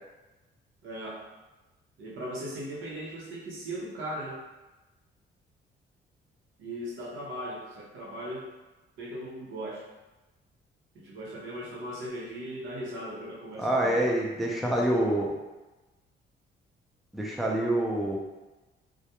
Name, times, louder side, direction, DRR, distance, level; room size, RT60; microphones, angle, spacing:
voice 1, 0.8-1.2 2.0-4.4 6.6-8.5 9.0-9.8 10.9-14.1 14.6-14.9, right 1 dB, 85° right, -4 dB, 0.7 m, -38 dB
voice 2, 13.6-15.3 17.1-18.2, right 1 dB, ahead, -2 dB, 0.4 m, -26 dB
2.2 x 2.2 x 2.8 m, 1.1 s
cardioid pair, 90°, 20 cm